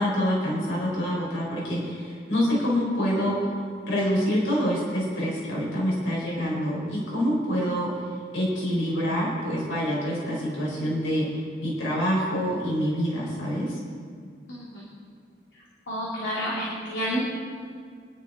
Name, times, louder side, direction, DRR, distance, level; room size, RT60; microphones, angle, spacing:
voice 1, 0.0-3.4 3.9-7.9 8.3-13.8, equal, 90° left, -4 dB, 4.4 m, -26 dB
voice 2, 14.5-14.8 15.9-17.2, equal, 75° left, -7 dB, 3.1 m, -30 dB
24.5 x 11.0 x 3.8 m, 2.1 s
head